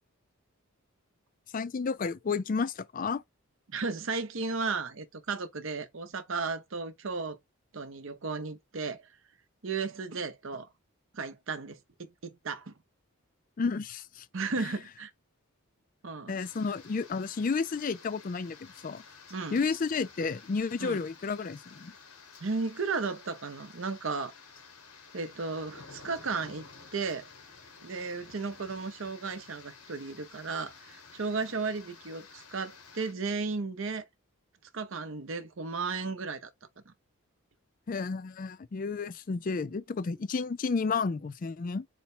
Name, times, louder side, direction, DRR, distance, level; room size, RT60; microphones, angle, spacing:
voice 1, 1.5-3.2 13.6-14.3 16.3-19.0 19.5-21.9 37.9-41.9, left 4 dB, 40° left, 0.3 m, -31 dB
voice 2, 3.7-7.4 7.7-9.0 9.6-10.7 11.1-12.7 14.3-15.1 16.0-16.3 19.3-19.6 20.8-21.0 22.4-24.3 25.1-26.6 26.9-27.3 27.8-34.1 34.7-36.5 36.9-37.0, right 4 dB, 60° right, 0.7 m, -34 dB
sound 1, 16.4-33.1, left 4 dB, 80° left, 1.2 m, -52 dB
4.2 x 2.2 x 4.2 m
head